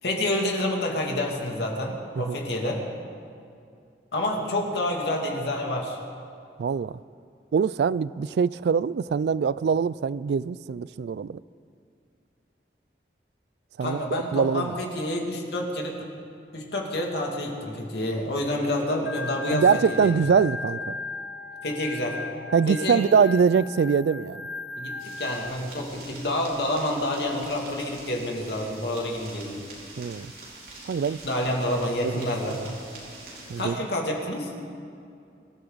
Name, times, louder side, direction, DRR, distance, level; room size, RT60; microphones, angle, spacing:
voice 1, 0.0-2.8 4.1-6.0 13.8-16.1 16.5-20.2 21.6-22.2 22.7-23.0 24.8-29.6 31.2-32.8 33.6-34.5, left 1 dB, 75° left, 2.5 m, -28 dB
voice 2, 6.6-7.0 7.5-11.4 13.8-14.7 19.5-21.0 22.5-24.5 30.0-30.3 30.8-31.2 32.0-32.6 33.5-33.8, right 6 dB, 70° right, 0.3 m, -23 dB
Organ, 19.1-25.5, left 3 dB, 55° left, 1.1 m, -37 dB
sound 1, 25.0-33.6, right 2 dB, 55° right, 4.2 m, -45 dB
24.5 x 13.0 x 4.0 m
head